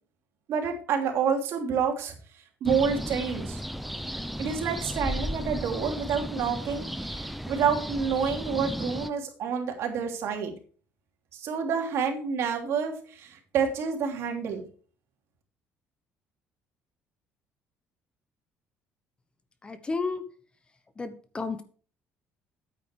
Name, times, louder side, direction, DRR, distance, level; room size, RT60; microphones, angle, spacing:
voice 1, 0.5-2.1 2.6-3.6 4.4-10.5 11.3-14.6, right 6 dB, 65° right, 2 dB, 3.1 m, -28 dB
sound 1, 2.6-9.1, equal, ahead, 0.6 m, -35 dB
voice 2, 19.6-20.2 21.0-21.6, left 4 dB, 20° left, 11 dB, 1.1 m, -32 dB
9.1 x 9.0 x 4.7 m, 0.41 s
cardioid pair, 120°, 5 cm